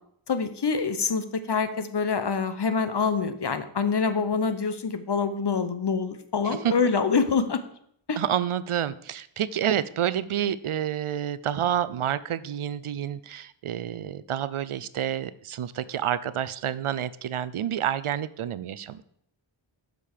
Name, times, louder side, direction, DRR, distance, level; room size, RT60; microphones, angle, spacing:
voice 1, 0.3-7.6 8.1-8.2, left 5 dB, 55° left, 10 dB, 0.9 m, -26 dB
voice 2, 8.2-19.0, right 10 dB, 80° right, 16 dB, 0.6 m, -29 dB
7.6 x 5.3 x 6.5 m, 0.70 s
wide cardioid pair, 60°, 49 cm